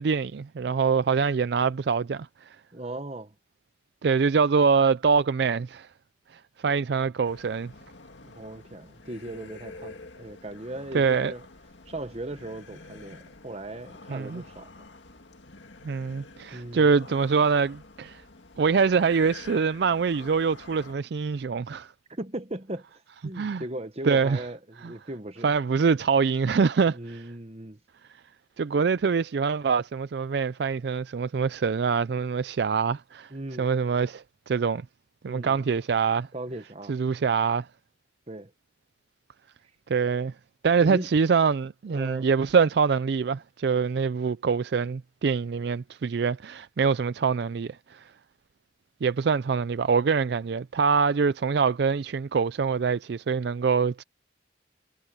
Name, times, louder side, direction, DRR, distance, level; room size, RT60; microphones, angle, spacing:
voice 1, 0.0-2.6 4.0-5.9 6.3-7.7 10.9-11.3 14.1-14.4 15.8-18.2 18.6-21.9 23.4-23.6 24.0-24.4 25.4-27.2 28.6-33.3 33.6-34.8 35.2-36.3 36.9-37.7 39.9-40.3 40.6-48.1 49.0-54.0, right 5 dB, 60° right, 0.4 m, -24 dB
voice 2, 2.7-3.3 8.2-11.4 11.9-14.9 16.5-16.9 22.1-25.5 26.9-27.8 33.3-33.7 35.3-35.6 36.3-37.0 38.3-38.5 40.8-41.1 41.9-42.3, right 1 dB, 35° right, 1.3 m, -38 dB
sound 1, 7.2-20.9, left 3 dB, 75° left, 2.0 m, -48 dB
head